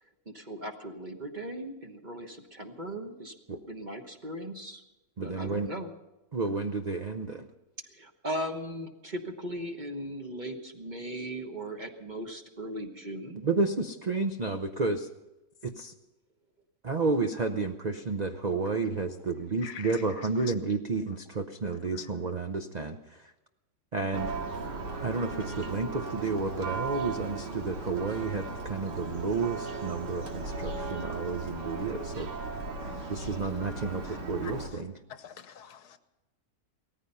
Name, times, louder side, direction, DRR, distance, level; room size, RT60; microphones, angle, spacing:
voice 1, 0.0-3.3 3.7-4.8 5.2-5.9 7.9-13.5, right 1 dB, 30° right, 4 dB, 1.2 m, -38 dB
voice 2, 5.2-5.7 6.3-7.5 13.4-15.1 15.6-15.9 16.8-23.3 23.9-24.3 25.0-32.3 33.1-35.0, right 3 dB, 50° right, 6 dB, 0.5 m, -31 dB
voice 3, 19.6-20.0 21.9-22.1 32.8-33.1 34.4-34.5 35.2-36.0, left 8 dB, 70° left, 11 dB, 1.4 m, -44 dB
Church bell, 24.1-34.7, right 3 dB, 85° right, 2.5 m, -36 dB
18.0 x 14.0 x 5.5 m, 1.0 s
omnidirectional pair, 1.8 m